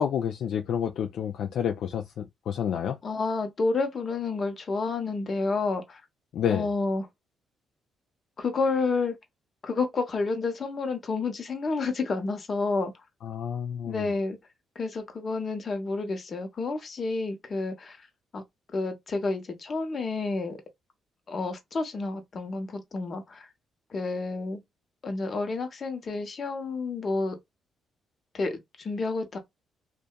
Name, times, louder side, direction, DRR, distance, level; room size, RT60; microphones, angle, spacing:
voice 1, 0.0-3.0 6.3-6.6 13.2-14.0, left 8 dB, 70° left, 0.3 m, -29 dB
voice 2, 3.0-6.0 6.5-7.1 8.4-9.2 9.6-12.9 13.9-14.4 14.8-18.0 18.3-18.4 18.7-20.6 21.3-23.5 23.9-24.6 25.0-27.4 28.3-29.4, left 3 dB, 45° left, 0.8 m, -30 dB
2.7 x 2.2 x 2.2 m
cardioid pair, 90°, 0 cm